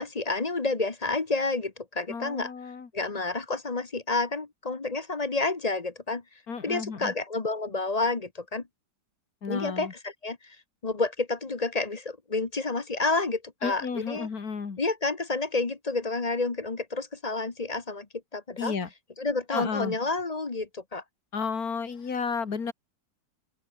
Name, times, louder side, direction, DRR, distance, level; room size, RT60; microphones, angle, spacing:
voice 1, 0.0-2.5 2.9-6.2 6.6-8.6 9.5-10.6 10.8-14.3 14.8-18.1 18.3-18.8 19.2-21.0, left 3 dB, 25° left, 1.1 m, -29 dB
voice 2, 2.1-2.9 6.5-7.1 9.4-9.9 13.6-14.8 18.6-18.9 19.5-20.0 21.3-22.7, left 5 dB, 55° left, 2.7 m, -32 dB
open air
omnidirectional pair, 1.9 m